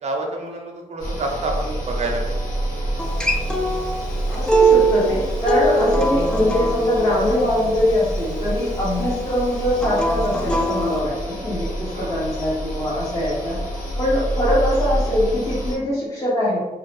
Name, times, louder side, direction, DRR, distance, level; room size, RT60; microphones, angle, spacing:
voice 1, 0.0-2.2 11.9-12.2, right 2 dB, 55° right, 1 dB, 0.6 m, -28 dB
sound 1, 1.0-15.8, right 1 dB, 90° left, 1.0 m, -27 dB
Acoustic guitar, 3.0-8.2 9.7-11.0, right 2 dB, 5° left, 0.3 m, -22 dB
voice 2, 4.3-13.6 14.0-16.6, left 1 dB, 25° left, -8 dB, 0.7 m, -22 dB
2.6 x 2.0 x 3.1 m, 1.1 s
wide cardioid pair, 115°, 14 cm